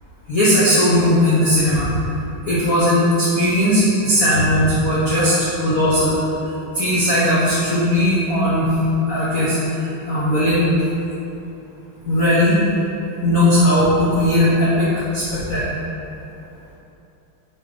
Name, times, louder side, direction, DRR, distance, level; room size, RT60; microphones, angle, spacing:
voice 1, 0.3-1.9 2.4-6.2 6.7-8.7 9.1-10.7 12.0-12.9 13.2-15.8, left 1 dB, 55° left, -8 dB, 1.1 m, -18 dB
5.0 x 4.6 x 5.0 m, 2.9 s
omnidirectional pair, 2.4 m